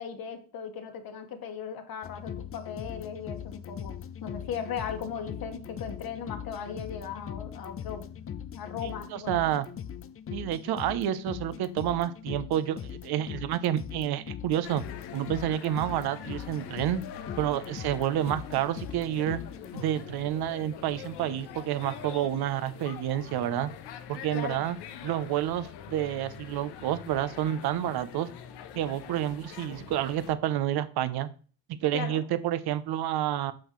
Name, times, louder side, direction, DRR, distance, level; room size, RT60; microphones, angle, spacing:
voice 1, 0.0-8.1 8.5-9.4 24.3-24.6 31.9-32.2, left 7 dB, 60° left, 5 dB, 1.8 m, -37 dB
sound 1, 2.0-19.8, left 9 dB, 35° left, 0.6 m, -40 dB
voice 2, 8.8-9.7 10.3-14.8 15.1-17.0 17.4-19.4 19.7-23.7 24.1-24.8 25.0-28.3 28.7-31.3 31.7-33.5, right 11 dB, 70° right, 13 dB, 0.8 m, -29 dB
sound 2, 14.6-30.3, left 8 dB, 80° left, 1.1 m, -44 dB
8.6 x 6.5 x 3.2 m, 0.39 s
cardioid pair, 85°, 39 cm